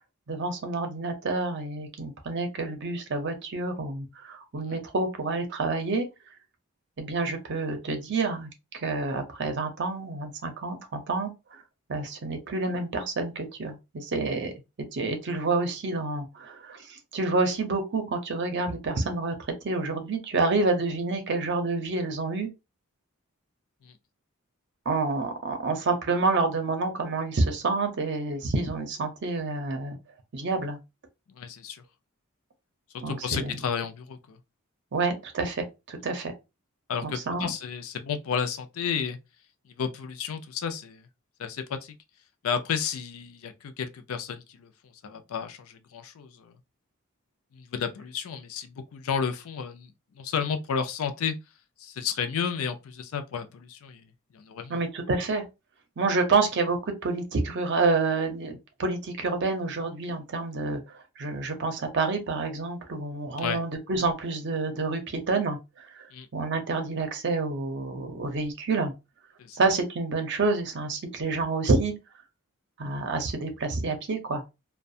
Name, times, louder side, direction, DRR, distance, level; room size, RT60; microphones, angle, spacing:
voice 1, 0.3-6.1 7.0-8.5 8.7-11.6 11.9-14.5 14.9-19.3 19.6-22.5 24.9-30.0 30.3-30.8 33.0-33.6 34.9-36.3 37.0-37.5 54.7-55.4 56.0-66.1 66.3-68.9 69.5-71.9 72.8-74.4, right 3 dB, 55° right, 0.6 m, -28 dB
voice 2, 31.4-31.8 32.9-34.4 36.9-39.2 39.8-41.0 41.4-41.9 42.4-44.7 45.0-46.5 47.5-49.9 50.2-51.3 51.8-54.1 54.3-54.8 63.4-63.6 66.1-66.3 69.4-69.6, left 7 dB, 70° left, 0.4 m, -32 dB
2.4 x 2.2 x 2.6 m
head